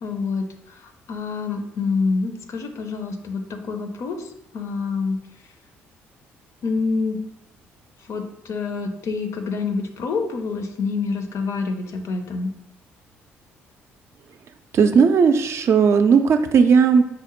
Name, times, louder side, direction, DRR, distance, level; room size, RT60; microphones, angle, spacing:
voice 1, 0.0-0.5 1.1-4.2 4.5-5.2 6.6-7.2 8.1-12.5, left 4 dB, 60° left, 6 dB, 0.5 m, -26 dB
voice 2, 14.7-17.0, right 6 dB, 50° right, 8 dB, 0.3 m, -16 dB
4.8 x 2.1 x 2.9 m, 0.85 s
hypercardioid pair, 55°, 6 cm